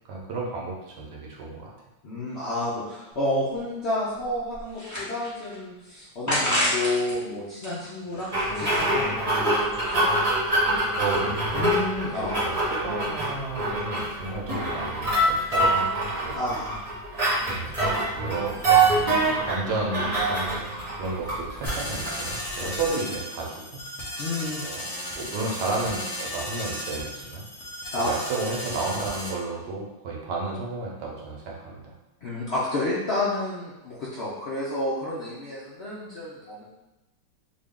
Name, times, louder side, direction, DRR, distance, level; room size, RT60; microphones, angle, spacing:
voice 1, 0.1-1.7 11.0-11.6 12.1-16.4 17.4-17.8 18.1-23.8 24.6-24.8 25.2-27.4 28.0-31.9, right 3 dB, 70° right, -2 dB, 1.3 m, -32 dB
voice 2, 2.0-10.2 11.5-12.4 16.3-16.9 22.6-22.8 24.2-24.6 27.9-28.1 32.2-36.7, left 1 dB, 80° left, -8 dB, 0.5 m, -30 dB
sound 1, 3.1-3.2 3.6-3.7 4.2-5.6 6.3-7.1 7.5-8.7, equal, 25° left, 0.3 m, -28 dB
sound 2, 8.3-22.9, right 2 dB, 25° right, 0.8 m, -25 dB
sound 3, 21.6-29.3, equal, 60° left, 1.2 m, -35 dB
3.7 x 2.3 x 3.6 m, 1.0 s
omnidirectional pair, 2.0 m